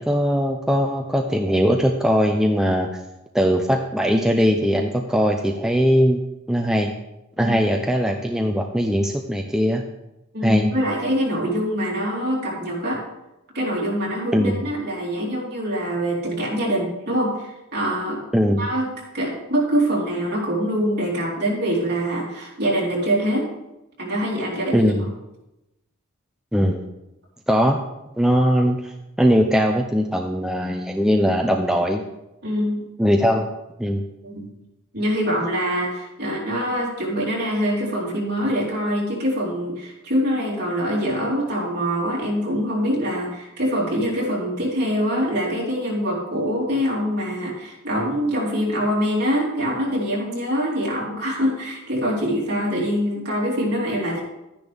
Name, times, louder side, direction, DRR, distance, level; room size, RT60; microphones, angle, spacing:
voice 1, 0.0-2.9 3.3-6.9 7.4-9.8 10.4-10.7 14.3-14.6 18.3-18.6 24.7-25.1 26.5-26.8 27.5-27.8 28.2-32.0 33.0-33.5 33.8-34.0, equal, 5° right, 3 dB, 0.5 m, -20 dB
voice 2, 10.3-13.0 13.5-18.2 18.6-23.5 24.0-24.9 32.4-32.8 34.2-34.5 34.9-54.2, equal, 50° right, -5 dB, 3.8 m, -24 dB
12.0 x 10.0 x 3.5 m, 0.94 s
head